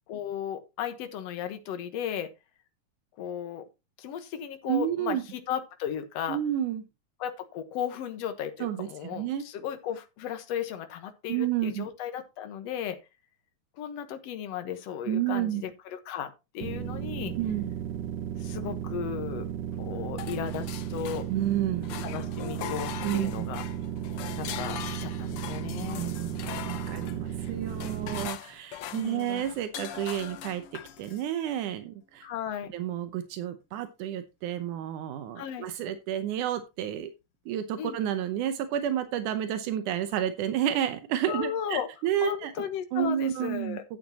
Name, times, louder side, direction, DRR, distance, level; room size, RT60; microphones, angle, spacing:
voice 1, 0.1-2.3 3.2-3.6 4.0-6.4 7.2-13.0 13.8-17.3 18.4-19.5 19.8-21.3 22.0-23.6 24.4-26.1 28.9-29.5 32.2-32.7 35.4-35.7 37.8-38.0 41.3-41.9 42.2-43.8, left 9 dB, 65° left, 8 dB, 2.2 m, -35 dB
voice 2, 4.7-5.2 6.3-6.8 8.6-9.5 11.3-11.8 15.1-15.6 17.4-17.7 21.3-21.9 23.0-23.5 25.8-30.6 31.0-32.3 32.7-37.1 37.5-42.5 42.9-43.8, right 11 dB, 85° right, 10 dB, 2.4 m, -30 dB
sound 1, 16.6-28.3, right 9 dB, 70° right, 1.8 m, -35 dB
sound 2, 20.2-21.5 21.8-31.3, left 11 dB, 80° left, 1.2 m, -41 dB
11.5 x 8.8 x 2.9 m, 0.25 s
omnidirectional pair, 3.5 m